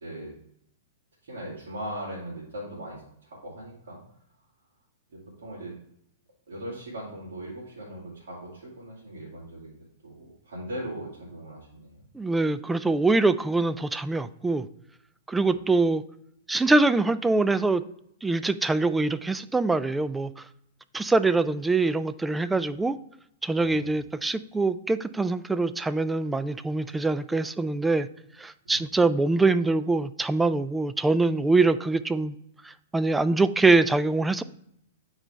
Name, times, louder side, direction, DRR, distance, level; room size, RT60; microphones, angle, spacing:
voice 1, 1.3-4.0 5.1-5.7 6.5-12.1 15.3-15.5 23.6-23.9 28.6-28.8, right 1 dB, 70° right, -6 dB, 2.4 m, -39 dB
voice 2, 12.1-14.7 15.3-16.0 16.5-17.8 18.2-20.4 20.9-23.0 23.4-28.1 28.4-32.3 32.6-34.4, right 3 dB, 10° right, 14 dB, 0.3 m, -24 dB
8.9 x 4.0 x 3.3 m, 0.73 s
hypercardioid pair, 115°, 0 cm